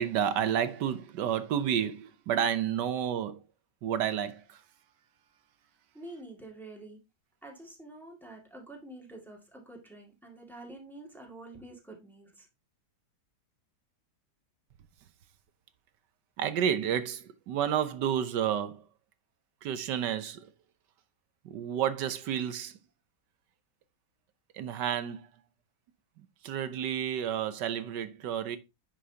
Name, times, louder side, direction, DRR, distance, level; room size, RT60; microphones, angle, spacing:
voice 1, 0.0-3.4 3.8-4.6 16.4-18.8 19.6-20.5 21.4-22.8 24.5-25.3 26.2-28.6, right 9 dB, 75° right, 1.5 m, -30 dB
voice 2, 5.9-7.0 7.4-12.5, right 2 dB, ahead, 2.0 m, -47 dB
9.9 x 6.0 x 2.8 m
omnidirectional pair, 1.9 m